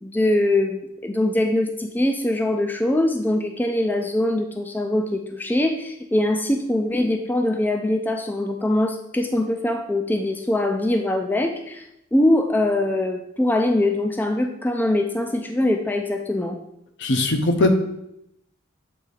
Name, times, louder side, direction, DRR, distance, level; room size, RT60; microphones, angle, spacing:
voice 1, 0.0-11.8 12.1-16.6, left 1 dB, 10° left, 4 dB, 0.3 m, -22 dB
voice 2, 17.0-17.7, left 2 dB, 60° left, 6 dB, 0.7 m, -19 dB
7.7 x 2.7 x 5.0 m, 0.80 s
head